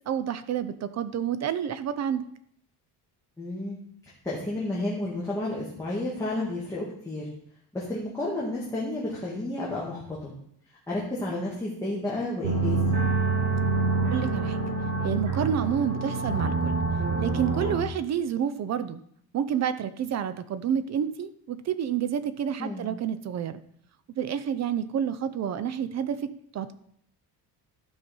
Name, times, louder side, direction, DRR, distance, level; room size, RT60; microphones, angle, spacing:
voice 1, 0.1-2.2 14.1-14.6 15.0-16.7 17.2-19.0 19.3-23.6 24.2-26.7, right 8 dB, 45° right, 13 dB, 0.6 m, -29 dB
voice 2, 3.4-3.8 4.2-7.2 7.7-10.3 10.9-13.0 22.6-22.9, left 2 dB, 10° left, -6 dB, 2.0 m, -31 dB
sound 1, 12.4-17.8, right 4 dB, 85° right, 4.2 m, -26 dB
13.0 x 5.6 x 5.4 m, 0.68 s
cardioid pair, 180°, 39 cm